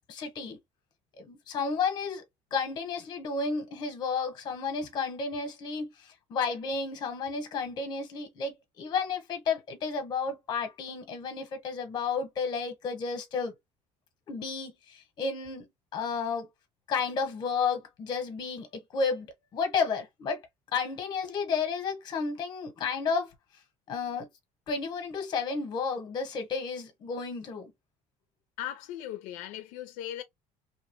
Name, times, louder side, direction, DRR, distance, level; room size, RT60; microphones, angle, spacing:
voice 1, 0.1-0.6 1.2-2.2 2.5-13.5 14.3-15.7 15.9-16.5 16.9-20.4 20.7-23.3 23.9-24.3 24.7-27.7, left 5 dB, 35° left, 0.9 m, -32 dB
voice 2, 28.6-30.2, left 11 dB, 85° left, 0.4 m, -38 dB
2.8 x 2.1 x 2.9 m
cardioid pair, 170°, 13 cm